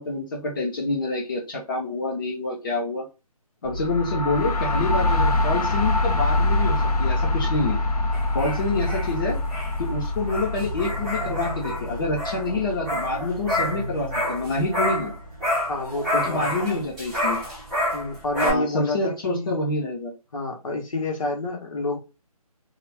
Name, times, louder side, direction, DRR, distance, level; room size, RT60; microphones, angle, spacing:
voice 1, 0.0-3.1 3.6-7.8 8.3-9.4 9.8-15.1 16.1-17.4 18.4-20.1, left 2 dB, 35° left, 0.8 m, -27 dB
sound 1, 3.6-15.3, left 2 dB, 75° left, 0.7 m, -26 dB
sound 2, 8.1-15.1 15.4-18.5, left 1 dB, 5° left, 0.6 m, -29 dB
voice 2, 15.7-16.6 17.9-19.5 20.3-22.0, left 2 dB, 60° left, 1.0 m, -29 dB
2.3 x 2.3 x 3.2 m
figure-of-eight pair, 155°, 20 cm